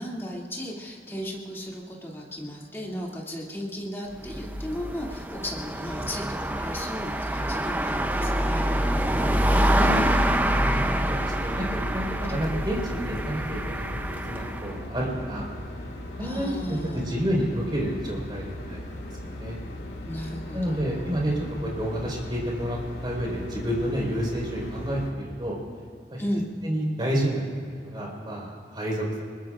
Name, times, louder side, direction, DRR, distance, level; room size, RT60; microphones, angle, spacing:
voice 1, 0.0-8.7 16.2-17.2 20.0-21.2 26.2-26.5, equal, 15° left, -4 dB, 2.6 m, -35 dB
sound 1, 4.1-14.7, right 1 dB, 10° right, 0.6 m, -26 dB
sound 2, 9.0-25.1, left 1 dB, 70° left, 2.3 m, -38 dB
voice 2, 9.3-10.0 10.4-15.5 16.2-18.8 19.2-19.6 20.5-25.6 26.1-26.2 26.6-29.0, equal, 25° right, -3 dB, 4.5 m, -30 dB
25.5 x 22.0 x 2.5 m, 2.3 s
head